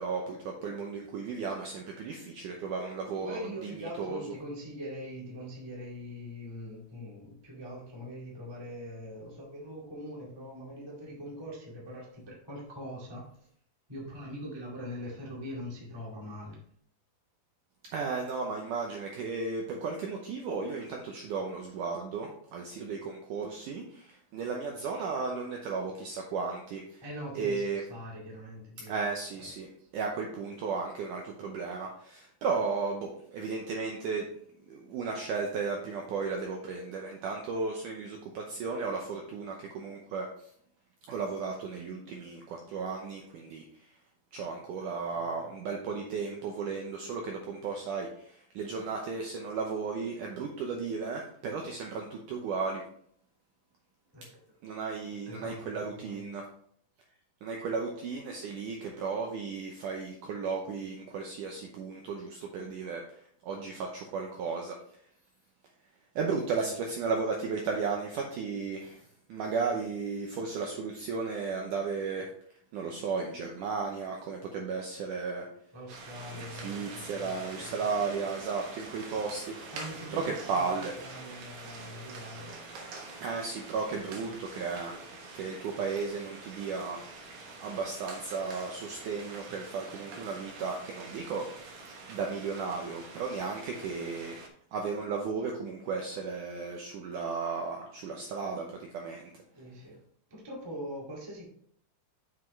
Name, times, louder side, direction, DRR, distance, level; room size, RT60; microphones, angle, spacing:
voice 1, 0.0-4.3 17.9-27.0 27.3-27.8 28.9-29.7 29.9-34.3 34.7-40.5 41.1-43.9 44.3-52.8 54.6-56.4 57.4-64.8 66.1-69.0 69.3-72.3 72.7-75.5 76.3-79.6 80.1-80.9 83.2-84.9 85.3-87.0 87.6-91.5 92.1-94.4 94.7-99.3, right 4 dB, 85° right, 1 dB, 1.8 m, -34 dB
voice 2, 3.2-13.3 13.9-16.6 27.0-28.9 29.4-29.5 44.8-45.5 54.1-54.3 55.3-56.2 66.6-66.7 75.7-78.0 79.7-82.5 84.0-84.2 99.6-99.9 100.3-101.5, equal, 35° right, -4 dB, 0.4 m, -43 dB
sound 1, 75.9-94.5, right 3 dB, 65° right, 2.5 m, -46 dB
7.3 x 6.0 x 3.2 m, 0.64 s
omnidirectional pair, 4.6 m